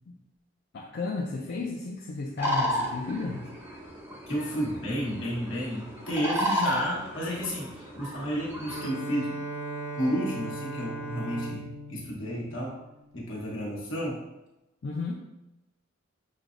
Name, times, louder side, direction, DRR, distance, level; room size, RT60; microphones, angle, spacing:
voice 1, 0.7-3.5 14.8-15.1, left 3 dB, 55° left, -2 dB, 0.4 m, -33 dB
sound 1, 2.4-8.9, equal, 10° right, 0.5 m, -33 dB
voice 2, 4.3-9.4 9.9-12.7 13.1-14.2, equal, 70° left, -4 dB, 1.2 m, -31 dB
Bowed string instrument, 8.6-13.4, right 2 dB, 90° right, 0.6 m, -38 dB
6.1 x 2.0 x 2.5 m, 0.96 s
head